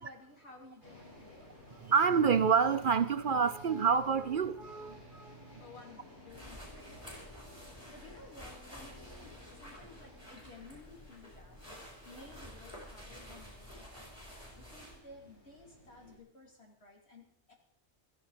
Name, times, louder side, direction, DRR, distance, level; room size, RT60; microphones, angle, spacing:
voice 1, 0.0-1.5 5.6-7.4 7.9-11.6 12.0-17.5, left 2 dB, 70° left, 3.6 m, -55 dB
sound 1, 0.8-16.2, left 1 dB, 45° left, 6.7 m, -56 dB
voice 2, 1.8-5.6, right 6 dB, 55° right, 0.8 m, -28 dB
sound 2, 6.3-15.0, equal, 20° left, 5.3 m, -51 dB
15.5 x 14.0 x 5.1 m
omnidirectional pair, 1.1 m